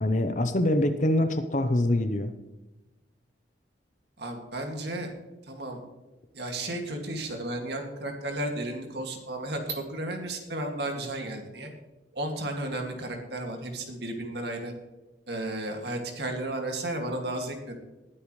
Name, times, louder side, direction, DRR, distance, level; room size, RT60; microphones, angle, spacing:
voice 1, 0.0-2.3, left 1 dB, 40° left, 9 dB, 0.8 m, -24 dB
voice 2, 4.2-5.1 5.5-5.8 6.3-11.7 12.1-14.7 15.3-17.8, right 1 dB, 60° right, 3 dB, 2.3 m, -33 dB
20.0 x 8.6 x 3.2 m, 1.1 s
head